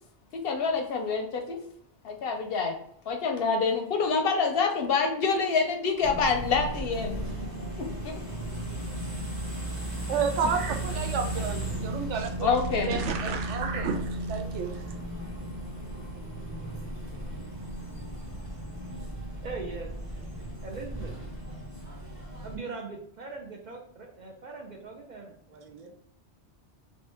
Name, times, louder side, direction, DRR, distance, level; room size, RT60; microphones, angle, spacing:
voice 1, 0.3-1.6 2.0-2.8 3.1-7.2 8.0-8.1 12.4-13.0, left 5 dB, 65° left, 4 dB, 0.7 m, -26 dB
sound 1, 6.0-22.6, right 1 dB, 15° right, 1.1 m, -35 dB
voice 2, 9.8-12.5 12.8-14.7, right 6 dB, 85° right, 6 dB, 0.9 m, -31 dB
voice 3, 19.4-20.3 20.6-21.1 22.4-25.9, right 4 dB, 55° right, 1 dB, 0.5 m, -41 dB
2.8 x 2.7 x 3.4 m, 0.67 s
omnidirectional pair, 1.2 m